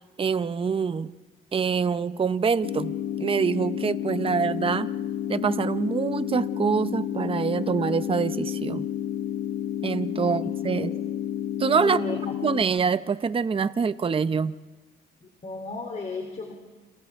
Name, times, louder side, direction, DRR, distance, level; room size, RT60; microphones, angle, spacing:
voice 1, 0.2-1.1 1.5-4.9 5.3-8.9 9.8-10.9 11.6-12.2 12.4-14.5, right 6 dB, 25° right, 0.7 m, -25 dB
sound 1, 2.6-12.6, left 10 dB, 85° left, 0.9 m, -30 dB
voice 2, 10.1-10.9 11.8-12.4 15.2-16.5, left 3 dB, 35° left, 3.3 m, -35 dB
30.0 x 28.0 x 3.6 m
cardioid pair, 90°, 20 cm